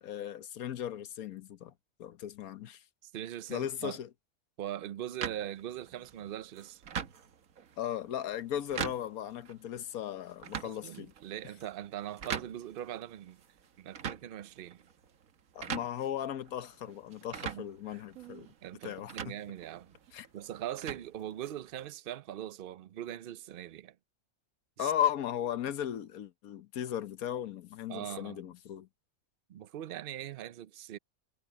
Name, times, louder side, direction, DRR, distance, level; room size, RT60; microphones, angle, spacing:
voice 1, 0.0-1.7 2.0-2.8 3.5-4.1 7.8-11.1 15.5-18.5 18.8-19.4 20.1-20.3 24.8-28.9, left 10 dB, 85° left, 1.3 m, -36 dB
voice 2, 3.0-4.0 4.6-6.8 10.6-13.4 13.8-14.9 17.5-17.7 18.6-20.0 20.3-24.0 24.8-24.9 27.9-28.4 29.5-31.0, right 11 dB, 55° right, 0.7 m, -41 dB
sound 1, 5.2-21.8, right 7 dB, 75° right, 1.5 m, -44 dB
omnidirectional pair, 1.5 m